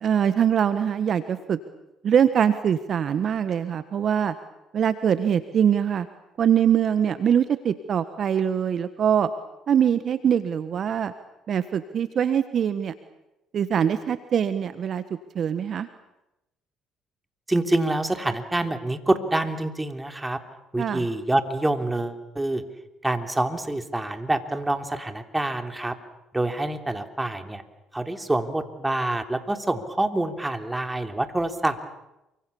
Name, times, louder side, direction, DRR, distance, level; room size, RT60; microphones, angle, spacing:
voice 1, 0.0-1.6 2.0-4.3 4.7-6.1 6.4-9.3 9.7-11.1 11.5-12.9 13.5-15.0 15.3-15.9 20.8-21.1, right 8 dB, 55° right, 12 dB, 1.4 m, -23 dB
voice 2, 17.5-20.4 20.7-22.6 23.0-26.0 26.3-27.6 27.9-31.8, right 2 dB, 15° right, 7 dB, 3.3 m, -26 dB
28.0 x 25.0 x 7.1 m, 0.93 s
supercardioid pair, 65°, 0 cm